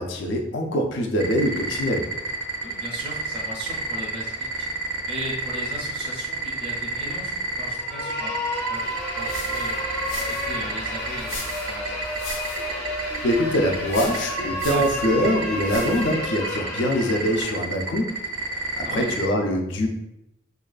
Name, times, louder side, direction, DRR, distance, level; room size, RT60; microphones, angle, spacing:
voice 1, 0.0-2.1 13.2-18.2 18.5-19.9, equal, 60° left, 2 dB, 0.4 m, -24 dB
sound 1, 1.2-19.3, right 4 dB, 75° right, 0.5 m, -29 dB
voice 2, 2.6-4.7 5.0-9.8 10.1-12.0 14.6-14.8 18.8-19.1, equal, 25° right, -3 dB, 0.5 m, -37 dB
sound 2, 7.8-17.6, equal, 15° left, 0.6 m, -31 dB
sound 3, 8.8-16.2, left 1 dB, 90° left, 0.8 m, -39 dB
2.4 x 2.3 x 2.3 m, 0.86 s
head